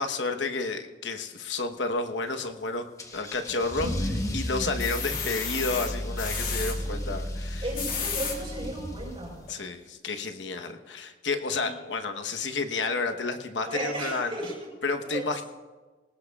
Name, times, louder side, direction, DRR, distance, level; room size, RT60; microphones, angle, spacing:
voice 1, 0.0-2.9 3.1-3.9 4.3-7.6 9.5-14.4 14.8-15.4, left 3 dB, 90° left, 6 dB, 1.1 m, -31 dB
Car / Engine starting / Accelerating revving vroom, 3.0-9.5, equal, 20° left, 1.0 m, -34 dB
sound 1, 3.5-4.1 4.6-6.8 7.5-8.4 9.0-9.1 9.4-9.5, left 6 dB, 50° left, 2.0 m, -33 dB
voice 2, 3.8-4.4 6.8-7.2 7.6-9.4 11.5-11.7 13.7-14.7 15.0-15.4, right 1 dB, 30° right, -1 dB, 4.6 m, -35 dB
20.5 x 18.5 x 2.4 m, 1.3 s
head